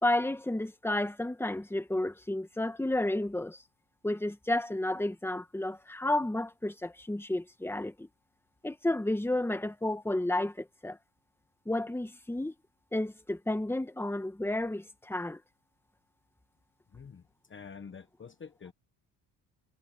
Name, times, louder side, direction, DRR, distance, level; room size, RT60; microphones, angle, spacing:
voice 1, 0.0-3.6 4.0-8.1 8.6-11.0 11.7-12.5 12.9-15.4, left 1 dB, 5° left, 1.8 m, -31 dB
voice 2, 16.9-17.2 17.5-18.7, left 6 dB, 30° left, 1.2 m, -47 dB
cardioid pair, 95°, 39 cm